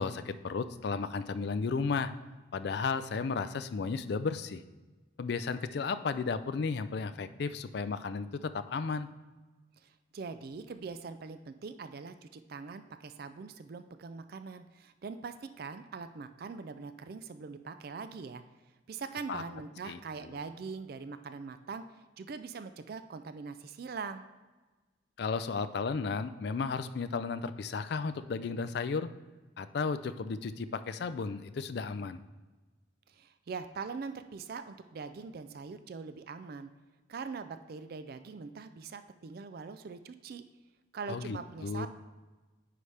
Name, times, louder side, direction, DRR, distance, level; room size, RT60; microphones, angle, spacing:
voice 1, 0.0-2.1 2.5-4.6 5.2-9.1 19.3-19.4 19.9-20.4 25.2-29.1 29.6-32.2 41.1-41.9, left 4 dB, 55° left, 11 dB, 0.4 m, -34 dB
voice 2, 9.8-18.4 18.9-21.8 22.2-24.2 33.1-36.7 37.1-40.5 40.9-41.9, right 5 dB, 50° right, 10 dB, 0.4 m, -42 dB
9.4 x 5.0 x 3.3 m, 1.2 s
head